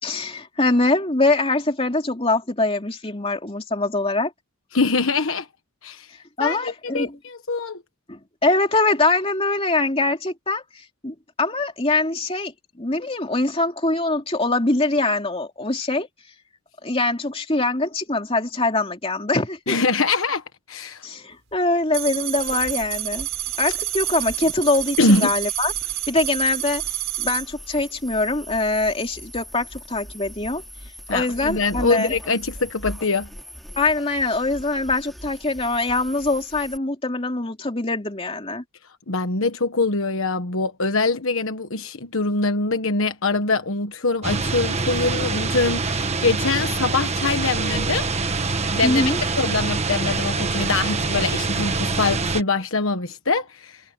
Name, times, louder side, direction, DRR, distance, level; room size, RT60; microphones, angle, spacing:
voice 1, 0.0-4.3 6.4-7.2 8.1-12.5 12.8-16.1 16.8-19.8 21.0-23.3 23.6-25.7 26.1-26.8 27.2-30.6 31.1-32.1 33.8-38.6 48.8-49.2, left 2 dB, 25° left, 2.9 m, -23 dB
voice 2, 4.7-5.5 5.8-6.1 6.4-7.8 19.7-21.0 25.0-25.3 31.1-33.3 39.1-48.1 48.4-49.0 49.4-53.8, left 3 dB, 65° left, 1.3 m, -23 dB
sound 1, 21.9-27.5, right 15 dB, 60° right, 6.5 m, -28 dB
sound 2, 22.4-36.8, equal, ahead, 5.1 m, -41 dB
sound 3, 44.2-52.4, right 3 dB, 30° right, 1.4 m, -25 dB
head